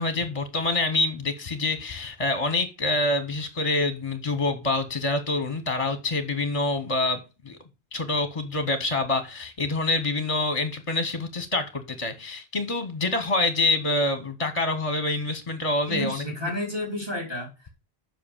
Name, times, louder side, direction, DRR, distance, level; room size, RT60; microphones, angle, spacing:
voice 1, 0.0-7.2 7.4-7.6 7.9-16.2, left 2 dB, 35° left, 1.0 m, -26 dB
voice 2, 15.9-17.7, left 1 dB, 25° right, 3.5 m, -31 dB
7.6 x 5.8 x 7.1 m
omnidirectional pair, 1.0 m